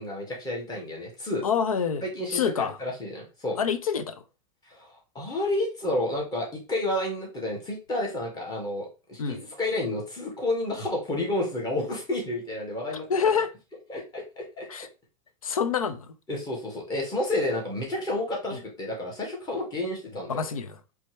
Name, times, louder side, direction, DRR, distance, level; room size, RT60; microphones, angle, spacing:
voice 1, 0.0-1.5 2.0-3.6 4.6-13.0 13.9-14.7 16.3-20.4, left 1 dB, 25° left, 2.0 m, -30 dB
voice 2, 1.4-2.8 3.6-4.2 9.2-9.4 13.1-13.5 14.7-14.9 15.4-16.1 18.5-18.6 20.3-20.8, left 6 dB, 90° left, 0.5 m, -27 dB
4.3 x 3.4 x 3.2 m
hypercardioid pair, 105°, 17 cm